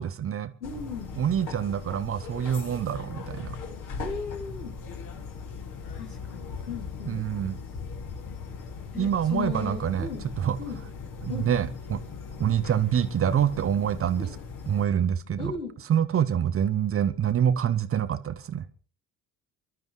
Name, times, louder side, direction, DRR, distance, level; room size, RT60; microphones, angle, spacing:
voice 1, 0.0-0.5 1.1-3.6 7.1-7.6 8.9-10.1 10.4-10.6 11.2-12.0 12.4-14.3 14.7-15.5 15.9-18.7, right 9 dB, 30° right, 14 dB, 0.9 m, -26 dB
voice 2, 0.6-1.1 4.0-4.7 5.9-7.3 8.9-10.2 10.6-10.8 11.3-11.5 14.1-14.3 15.4-15.7, left 5 dB, 80° left, 0 dB, 3.1 m, -36 dB
sound 1, 0.6-14.9, left 5 dB, 45° left, 2.4 m, -39 dB
29.0 x 12.0 x 3.2 m, 0.41 s
figure-of-eight pair, 55°, 43 cm